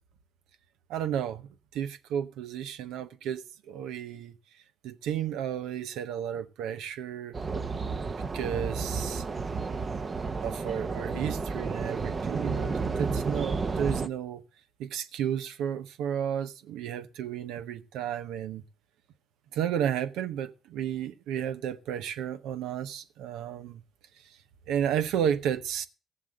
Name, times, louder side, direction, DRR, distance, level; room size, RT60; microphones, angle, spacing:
voice 1, 0.9-4.3 4.8-7.4 8.3-9.2 10.4-14.4 14.8-18.6 19.5-23.8 24.7-25.9, right 9 dB, 80° right, 0.8 m, -32 dB
sound 1, 7.3-14.1, right 4 dB, 40° right, 0.9 m, -31 dB
15.0 x 7.4 x 6.4 m
supercardioid pair, 60°, 0 cm